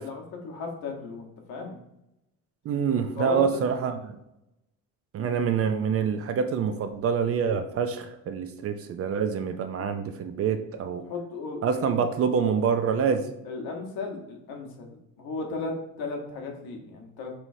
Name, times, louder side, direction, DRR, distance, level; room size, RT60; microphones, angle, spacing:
voice 1, 0.0-1.8 3.2-3.6 5.2-5.4 9.8-9.9 11.0-12.0 13.4-17.3, left 4 dB, 80° left, 1 dB, 1.2 m, -35 dB
voice 2, 2.6-4.2 5.1-11.0 11.6-13.3, right 6 dB, 40° right, 8 dB, 0.4 m, -26 dB
5.5 x 3.1 x 2.6 m, 0.86 s
cardioid pair, 135°, 35 cm